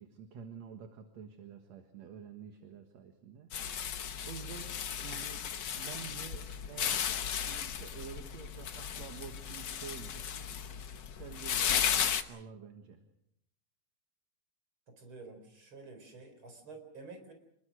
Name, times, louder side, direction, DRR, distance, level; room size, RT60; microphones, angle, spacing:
voice 1, 0.0-3.5 3.8-4.7 5.0-5.4 5.7-10.3 11.0-13.0, right 7 dB, 65° right, 6 dB, 2.6 m, -49 dB
moving plant, 3.5-12.2, left 8 dB, 75° left, 1.0 m, -35 dB
voice 2, 14.9-17.3, right 3 dB, 40° right, 6 dB, 4.9 m, -50 dB
27.5 x 21.0 x 6.3 m, 0.77 s
omnidirectional pair, 3.6 m